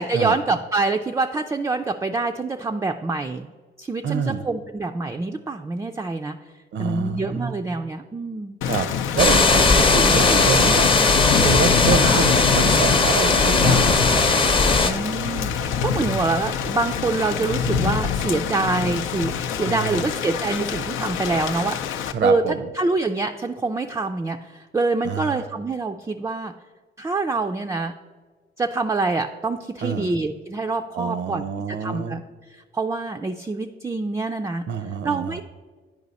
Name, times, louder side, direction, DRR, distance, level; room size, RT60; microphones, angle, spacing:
voice 1, 0.0-3.5 3.8-6.4 6.8-8.6 11.9-12.2 14.8-19.3 19.6-22.4 22.7-26.5 27.0-27.9 28.6-31.4 31.7-32.2 32.5-34.6 35.0-35.4, right 3 dB, 15° right, 4 dB, 0.3 m, -25 dB
voice 2, 4.0-4.4 6.7-7.5 8.6-8.9 9.1-11.1 11.4-14.2 16.0-16.2 19.6-20.1 22.1-22.7 25.0-25.5 29.8-30.1 30.9-32.2 34.7-35.4, right 6 dB, 65° right, 12 dB, 0.6 m, -27 dB
Thunder / Rain, 8.6-22.1, left 7 dB, 85° left, 0.5 m, -25 dB
sound 1, 9.2-14.9, left 3 dB, 25° left, 0.6 m, -18 dB
9.4 x 4.8 x 4.0 m, 1.4 s
cardioid pair, 90°, 20 cm